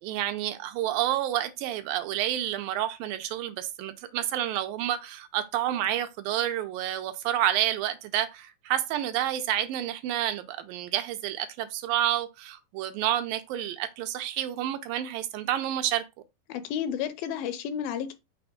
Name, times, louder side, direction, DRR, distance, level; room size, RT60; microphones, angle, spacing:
voice 1, 0.0-16.0, right 12 dB, 80° right, 2.3 m, -29 dB
voice 2, 16.5-18.1, left 8 dB, 85° left, 2.4 m, -31 dB
6.0 x 3.4 x 5.0 m
omnidirectional pair, 4.2 m